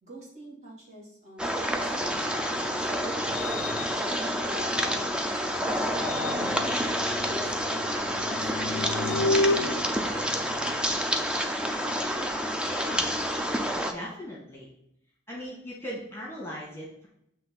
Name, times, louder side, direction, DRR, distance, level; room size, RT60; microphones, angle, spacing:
voice 1, 0.0-3.4 4.0-5.7 6.5-8.2 8.5-10.7, equal, 40° right, -5 dB, 2.5 m, -46 dB
sound 1, 1.4-13.9, equal, 5° right, 0.5 m, -28 dB
sound 2, 2.1-5.3 5.8-11.0, left 2 dB, 75° left, 0.3 m, -33 dB
voice 2, 13.7-14.7 15.3-17.1, equal, 15° left, -4 dB, 1.7 m, -39 dB
7.6 x 3.2 x 5.7 m, 0.76 s
head